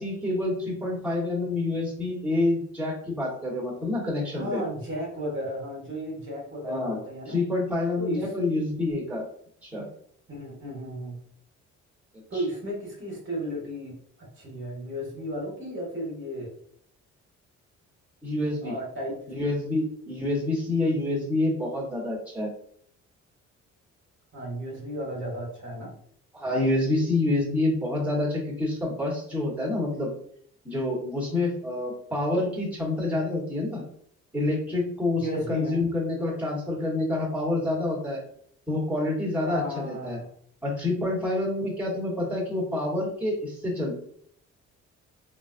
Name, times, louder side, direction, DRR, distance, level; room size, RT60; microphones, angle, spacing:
voice 1, 0.0-4.6 6.6-7.0 7.3-9.2 9.6-9.9 12.3-12.4 18.2-18.7 19.3-22.5 26.3-30.1 30.6-33.8 34.3-38.2 38.7-40.2 40.6-44.0, left 2 dB, 5° right, -5 dB, 1.3 m, -27 dB
voice 2, 4.3-7.4 8.0-8.3 10.3-11.2 12.3-16.5 18.6-19.5 24.3-25.9 35.1-35.8 39.4-40.3, equal, 40° right, -2 dB, 1.3 m, -34 dB
3.3 x 2.4 x 2.5 m, 0.64 s
cardioid pair, 90°, 30 cm